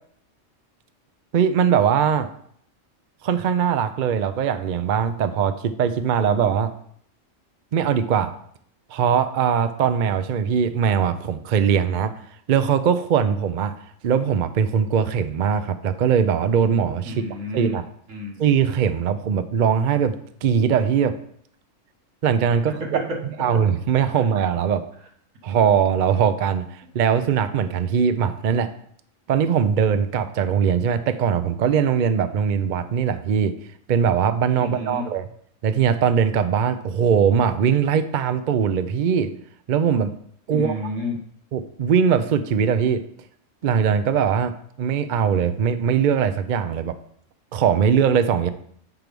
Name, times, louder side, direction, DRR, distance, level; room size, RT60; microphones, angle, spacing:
voice 1, 1.3-2.3 3.2-6.7 7.7-8.3 8.9-12.1 12.5-13.7 14.0-17.8 18.4-20.1 20.4-21.1 22.2-22.7 23.4-24.9 25.4-28.7 29.3-33.5 33.9-35.3 35.6-39.3 39.7-40.1 40.5-40.7 41.5-43.0 43.6-47.0 47.5-48.5, right 7 dB, 60° right, 10 dB, 0.5 m, -21 dB
voice 2, 17.0-17.8 18.1-18.4 22.7-23.2 23.5-23.6 34.6-35.1 40.5-41.2, left 1 dB, 75° right, 1 dB, 1.7 m, -30 dB
7.8 x 4.6 x 5.2 m, 0.64 s
omnidirectional pair, 1.3 m